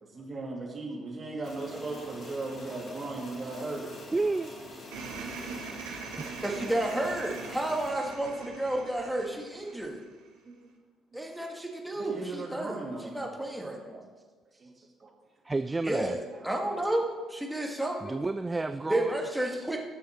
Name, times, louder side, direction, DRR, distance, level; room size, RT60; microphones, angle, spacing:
voice 1, 0.0-4.0 4.9-6.1 6.5-6.6 6.9-7.4 8.1-9.0 9.5-9.6 10.4-10.6 11.1-11.2 11.9-13.3 14.5-15.1 16.3-16.5, right 3 dB, 35° right, -2 dB, 2.6 m, -39 dB
sound 1, 1.4-7.9, left 2 dB, 40° left, 2.0 m, -46 dB
voice 2, 4.1-4.5 6.2-6.3 14.5-14.9 15.4-16.2 18.0-19.7, right 3 dB, 20° right, 10 dB, 0.4 m, -32 dB
sound 2, 4.9-10.3, right 5 dB, 65° right, 1.2 m, -42 dB
voice 3, 6.4-10.0 11.1-12.7 13.2-14.0 15.8-18.2 18.9-19.8, right 1 dB, 5° right, 0 dB, 1.9 m, -31 dB
19.0 x 7.0 x 3.1 m, 1.4 s
figure-of-eight pair, 45°, 0 cm